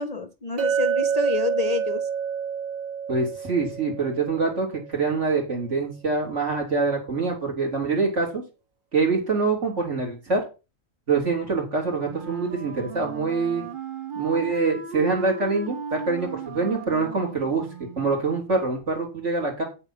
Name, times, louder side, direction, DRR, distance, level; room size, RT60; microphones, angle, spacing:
voice 1, 0.0-2.1, left 5 dB, 40° left, 0.6 m, -28 dB
Chink clink, 0.6-4.8, right 7 dB, 85° right, 2.4 m, -28 dB
voice 2, 3.1-8.4 8.9-10.4 11.1-13.7 14.1-17.7 18.0-19.6, right 4 dB, 60° right, 4.2 m, -25 dB
Wind instrument woodwind instrument, 12.0-18.2, right 6 dB, 40° right, 1.1 m, -36 dB
8.9 x 7.7 x 5.9 m
omnidirectional pair, 1.4 m